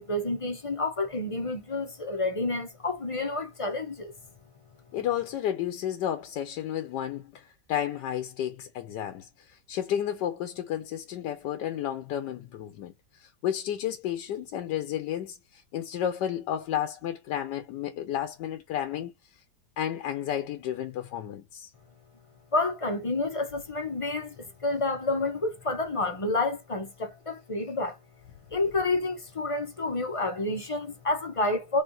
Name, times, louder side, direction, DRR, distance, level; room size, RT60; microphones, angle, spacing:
voice 1, 0.0-4.1 22.5-28.0 28.5-31.8, left 2 dB, 30° left, 0.6 m, -29 dB
voice 2, 4.9-12.9 13.2-19.1 19.8-21.7, left 10 dB, 80° left, 1.3 m, -32 dB
3.6 x 3.4 x 3.9 m
omnidirectional pair, 1.9 m